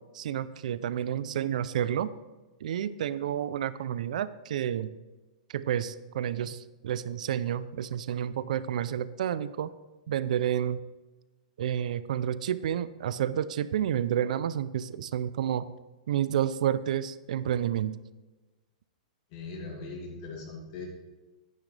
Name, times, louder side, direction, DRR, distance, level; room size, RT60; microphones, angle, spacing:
voice 1, 0.1-2.1 2.6-4.9 5.5-9.7 10.1-10.8 11.6-15.7 16.1-18.0, right 10 dB, 60° right, 16 dB, 0.4 m, -30 dB
voice 2, 19.3-20.9, left 3 dB, 35° left, -1 dB, 2.6 m, -40 dB
10.5 x 9.9 x 3.3 m, 1.2 s
hypercardioid pair, 170°, 4 cm